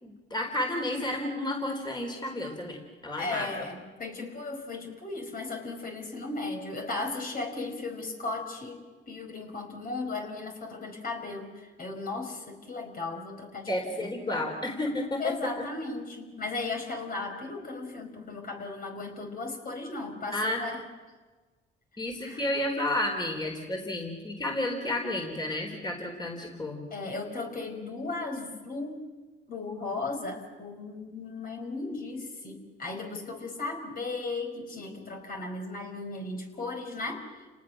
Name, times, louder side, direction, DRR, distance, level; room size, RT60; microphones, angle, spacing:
voice 1, 0.0-3.5 13.7-15.5 20.3-20.6 22.0-26.8, left 1 dB, 20° left, 2 dB, 4.1 m, -31 dB
voice 2, 3.2-13.7 14.0-14.5 15.2-20.8 22.2-22.4 26.9-29.1 29.5-37.5, left 3 dB, 45° left, 2 dB, 4.9 m, -36 dB
30.0 x 19.0 x 6.3 m, 1.3 s
cardioid pair, 90°, 20 cm